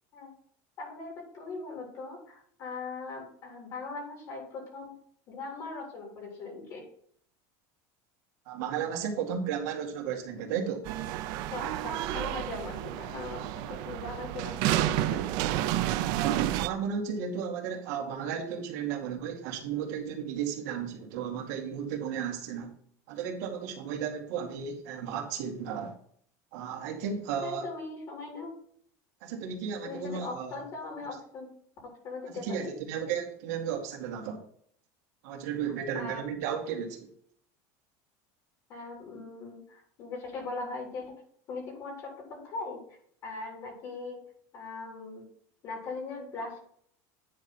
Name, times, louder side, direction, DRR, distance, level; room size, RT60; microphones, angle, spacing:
voice 1, 0.8-5.0 5.3-6.8 11.5-15.3 27.4-28.5 29.8-31.5 32.0-32.7 35.9-36.2 38.7-41.2 41.5-44.2 44.5-45.3 45.6-46.6, left 3 dB, 35° left, -1 dB, 3.4 m, -40 dB
voice 2, 8.5-10.9 15.9-22.7 23.1-25.9 26.5-27.7 29.2-30.6 32.4-34.4 35.2-37.1, right 7 dB, 70° right, 2 dB, 2.2 m, -34 dB
sound 1, 10.8-16.7, right 13 dB, 50° right, 0.5 m, -30 dB
9.8 x 4.2 x 5.8 m, 0.62 s
cardioid pair, 175°, 9 cm